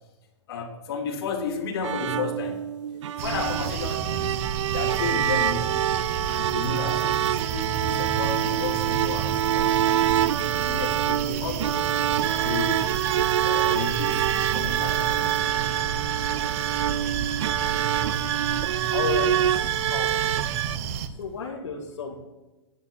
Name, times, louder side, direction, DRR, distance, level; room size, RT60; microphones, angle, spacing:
voice 1, 0.5-2.7 3.1-4.4 4.7-5.9 6.3-10.3 10.7-11.9 12.4-13.0 13.4-15.4 15.7-15.8, left 4 dB, 55° left, -1 dB, 3.7 m, -33 dB
sound 1, 1.8-20.8, right 11 dB, 90° right, 0.4 m, -26 dB
sound 2, 3.2-21.1, right 8 dB, 30° right, 0.8 m, -31 dB
sound 3, 12.2-20.7, right 11 dB, 55° right, 1.8 m, -32 dB
voice 2, 18.9-20.5 21.2-22.2, left 6 dB, 80° left, -2 dB, 2.3 m, -33 dB
11.0 x 10.5 x 7.4 m, 1.1 s
hypercardioid pair, 175°, 15 cm